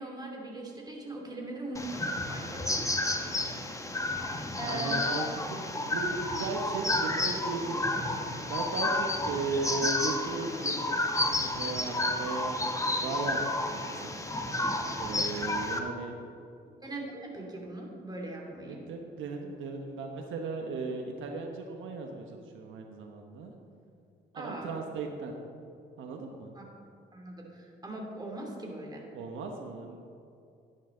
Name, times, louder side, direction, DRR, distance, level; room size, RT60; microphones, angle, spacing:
voice 1, 0.0-2.9 4.6-5.0 16.8-18.8 24.3-24.7 26.5-26.6 27.1-29.0, right 2 dB, 20° right, -1 dB, 2.7 m, -40 dB
sound 1, 1.7-15.8, left 2 dB, 15° left, 1.1 m, -31 dB
voice 2, 3.2-3.7 4.6-8.0 8.5-12.6 13.0-14.3 15.0-16.2 18.6-23.5 24.3-25.3 26.0-26.5 29.1-30.0, right 3 dB, 80° right, 2 dB, 1.1 m, -37 dB
12.0 x 10.5 x 3.9 m, 2.5 s
cardioid pair, 90°, 20 cm